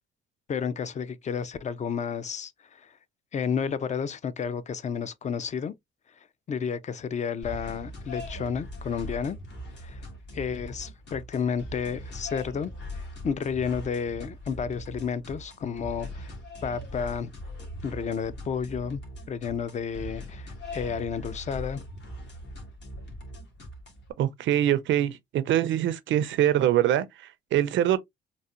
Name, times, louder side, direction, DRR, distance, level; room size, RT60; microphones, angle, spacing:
voice 1, 0.5-2.9 3.3-5.7 6.5-9.4 9.8-10.0 10.3-16.3 16.6-17.3 17.8-19.0 19.3-21.8, left 6 dB, 35° left, 0.5 m, -31 dB
sound 1, 7.4-24.1, left 1 dB, 65° left, 1.7 m, -41 dB
voice 2, 24.2-28.0, right 12 dB, 75° right, 0.5 m, -24 dB
4.0 x 2.1 x 2.4 m
cardioid pair, 90°, 20 cm